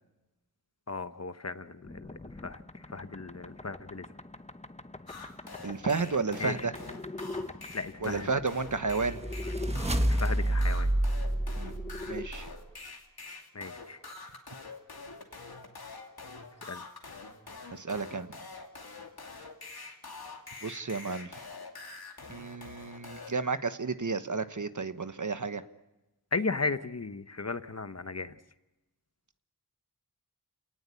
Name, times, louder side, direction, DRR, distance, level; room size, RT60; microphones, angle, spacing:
voice 1, 0.9-2.6 2.9-4.0 6.4-6.5 7.7-8.3 10.0-10.9 13.5-14.0 16.7-16.8 26.3-28.3, left 3 dB, 45° left, 11 dB, 1.1 m, -35 dB
sound 1, 1.8-9.7 11.0-12.3, left 2 dB, 20° left, 0.9 m, -44 dB
sound 2, 5.1-23.3, left 3 dB, 80° left, 2.7 m, -46 dB
voice 2, 5.6-6.7 8.0-9.2 11.6-11.7 12.1-12.5 17.7-18.3 20.6-21.4 22.3-25.6, right 4 dB, 55° right, 10 dB, 1.2 m, -32 dB
sound 3, 8.6-12.6, right 1 dB, 15° right, 1.5 m, -29 dB
30.0 x 18.5 x 8.4 m, 1.0 s
wide cardioid pair, 65°, 36 cm